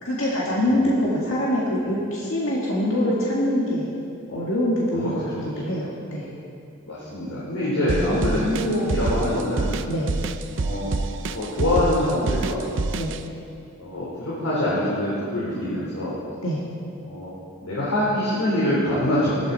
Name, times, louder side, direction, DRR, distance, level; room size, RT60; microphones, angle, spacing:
voice 1, 0.0-3.9 4.3-5.2 5.6-6.3 7.8-8.5 9.9-10.1 13.0-13.1 16.4-16.6, equal, 70° left, -5 dB, 1.9 m, -24 dB
voice 2, 4.9-5.7 6.9-9.7 10.5-10.9 11.2-12.7 13.8-16.2 17.1-17.3 17.6-19.5, left 1 dB, 90° left, -9 dB, 4.0 m, -25 dB
sound 1, 7.9-13.2, right 3 dB, 55° right, 0.5 m, -26 dB
17.5 x 12.5 x 4.2 m, 2.4 s
head